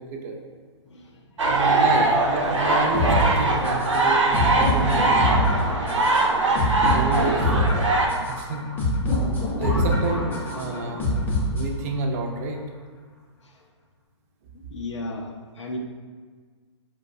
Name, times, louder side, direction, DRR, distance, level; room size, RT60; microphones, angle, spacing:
sound 1, 1.4-8.1, right 3 dB, 85° right, 0.6 m, -21 dB
voice 1, 1.5-5.4 6.9-7.5 8.3-8.9 9.6-11.1 11.5-12.6, right 3 dB, 35° right, 3 dB, 0.4 m, -29 dB
sound 2, 2.9-11.9, left 1 dB, 10° left, 0.6 m, -25 dB
voice 2, 6.3-6.6 14.5-15.8, left 2 dB, 75° left, 1 dB, 0.4 m, -35 dB
4.4 x 2.2 x 2.5 m, 1.5 s
hypercardioid pair, 125°, 15 cm